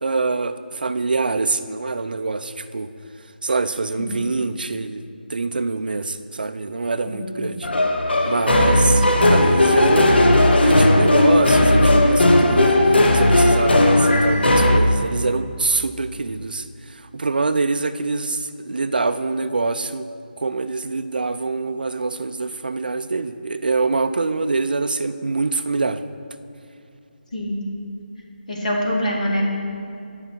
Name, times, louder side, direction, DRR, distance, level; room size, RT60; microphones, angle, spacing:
voice 1, 0.0-2.9 3.4-5.0 5.3-7.7 8.2-10.3 10.6-16.6 16.9-20.1 20.4-26.0, right 3 dB, 60° right, 10 dB, 0.4 m, -24 dB
voice 2, 7.1-7.6 8.8-8.9 27.3-27.6 28.5-29.4, equal, 45° left, -2 dB, 1.7 m, -25 dB
sound 1, 7.6-14.8, left 1 dB, 80° left, 1.0 m, -15 dB
11.0 x 5.8 x 4.5 m, 2.6 s
figure-of-eight pair, 175°, 6 cm